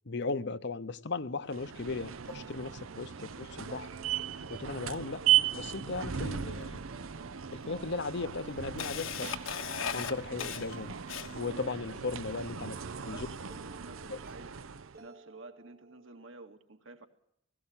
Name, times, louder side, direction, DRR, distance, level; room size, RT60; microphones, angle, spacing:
voice 1, 0.1-3.9 4.5-5.2 5.5-6.8 7.5-9.3 9.9-11.0 11.3-12.7 13.0-13.3 14.1-14.2, left 3 dB, 60° left, 0.9 m, -37 dB
sound 1, 1.5-15.0, right 10 dB, 85° right, 0.8 m, -36 dB
sound 2, 2.3-16.2, right 5 dB, 50° right, 1.1 m, -55 dB
Camera, 6.6-6.7 7.6-7.7 8.1-11.6, left 7 dB, 80° left, 1.4 m, -37 dB
voice 2, 13.0-14.5 15.0-17.1, right 2 dB, 70° right, 2.4 m, -51 dB
18.0 x 17.0 x 8.9 m
head